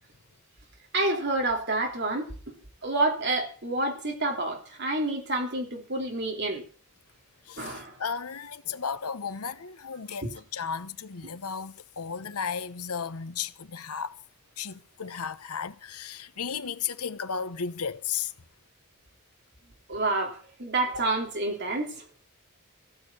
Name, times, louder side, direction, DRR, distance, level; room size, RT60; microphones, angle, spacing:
voice 1, 0.9-2.3 2.8-6.6 7.6-7.9 10.2-10.3 11.2-11.3 19.9-22.0, right 2 dB, 50° right, 3.0 m, -28 dB
voice 2, 7.5-14.2 14.6-18.3, left 6 dB, 85° left, 1.0 m, -34 dB
15.0 x 6.5 x 8.7 m
head